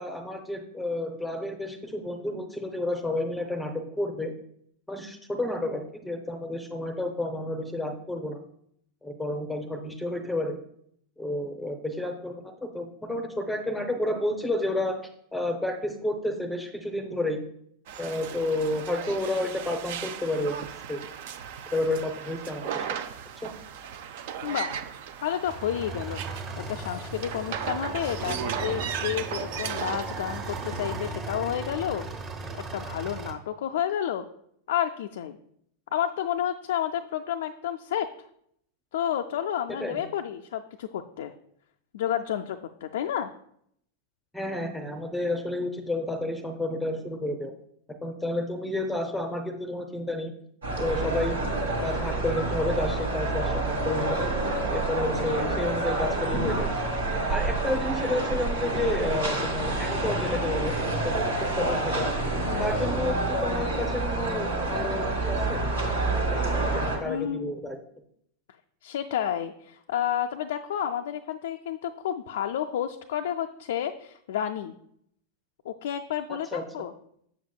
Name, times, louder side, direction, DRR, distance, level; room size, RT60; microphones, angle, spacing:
voice 1, 0.0-4.3 4.9-8.4 9.0-10.6 11.2-15.0 15.3-17.4 18.0-21.0 21.7-22.9 23.4-23.5 39.7-40.0 44.3-47.5 48.0-50.3 50.8-51.4 51.7-54.2 54.7-56.8 57.3-62.1 62.6-65.6 66.2-67.8 76.5-76.6, left 1 dB, 5° left, 5 dB, 0.6 m, -31 dB
sound 1, 17.9-31.1, right 8 dB, 50° right, 0.4 m, -36 dB
voice 2, 24.4-24.8 25.2-32.1 32.7-34.3 34.7-35.4 35.9-38.1 38.9-41.3 41.9-43.3 62.4-62.8 67.0-67.5 68.8-74.8 75.7-76.9, left 10 dB, 60° left, 5 dB, 0.3 m, -30 dB
sound 2, 25.4-33.3, right 3 dB, 30° right, 1.1 m, -37 dB
sound 3, 50.6-67.0, right 2 dB, 75° right, 1.4 m, -28 dB
7.2 x 7.1 x 2.3 m, 0.71 s
figure-of-eight pair, 90°, 0 cm